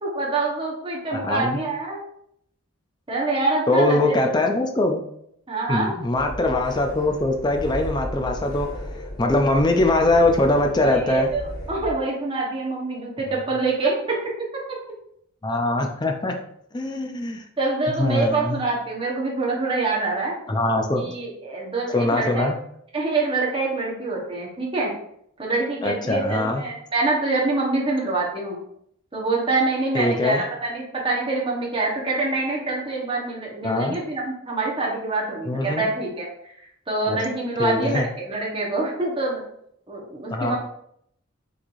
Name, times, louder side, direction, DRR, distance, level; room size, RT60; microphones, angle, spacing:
voice 1, 0.0-2.0 3.1-4.4 5.5-5.9 10.8-14.2 17.6-20.3 20.9-22.5 22.9-24.9 25.4-28.6 29.1-36.5 36.9-39.4 39.9-40.6, right 3 dB, 25° right, -3 dB, 1.2 m, -25 dB
voice 2, 1.1-1.6 3.7-5.0 5.7-8.7 9.2-11.3 15.4-16.3 16.7-17.4 18.0-18.6 20.5-21.1 21.9-22.6 25.8-26.6 29.9-30.4 33.6-34.0 35.5-35.9 37.1-37.2 37.6-38.0 40.3-40.6, left 2 dB, 20° left, 4 dB, 0.5 m, -22 dB
sound 1, 6.1-11.9, equal, 75° left, 1.7 m, -34 dB
6.0 x 3.3 x 2.6 m, 0.71 s
head